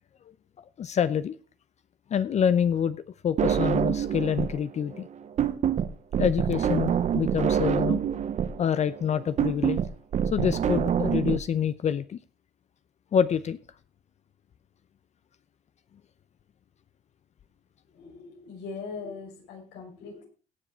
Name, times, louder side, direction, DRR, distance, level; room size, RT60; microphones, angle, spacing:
voice 1, 0.6-1.4 2.1-3.0 3.2-5.1 6.2-8.0 8.6-9.8 10.3-12.2 13.1-13.6, left 8 dB, 40° left, 13 dB, 0.7 m, -26 dB
sound 1, 3.4-4.6 4.9-11.4, right 8 dB, 45° right, 0.9 m, -26 dB
voice 2, 17.9-20.2, left 4 dB, 85° left, 0 dB, 6.1 m, -40 dB
17.5 x 6.9 x 4.4 m, 0.36 s
cardioid pair, 110°, 17 cm